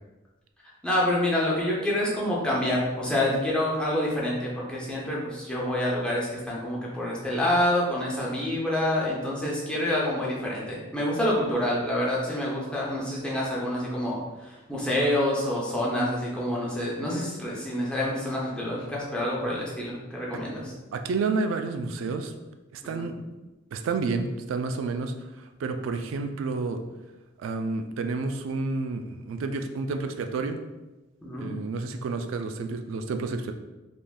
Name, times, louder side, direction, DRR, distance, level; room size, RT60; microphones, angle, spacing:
voice 1, 0.8-14.2 14.7-20.6 22.8-23.1 31.2-31.5, left 1 dB, 5° left, -5 dB, 0.6 m, -27 dB
voice 2, 20.9-22.3 22.7-23.1 23.7-26.8 27.4-30.6 31.4-33.5, right 4 dB, 75° right, 8 dB, 0.3 m, -30 dB
3.3 x 2.5 x 2.2 m, 1.1 s
head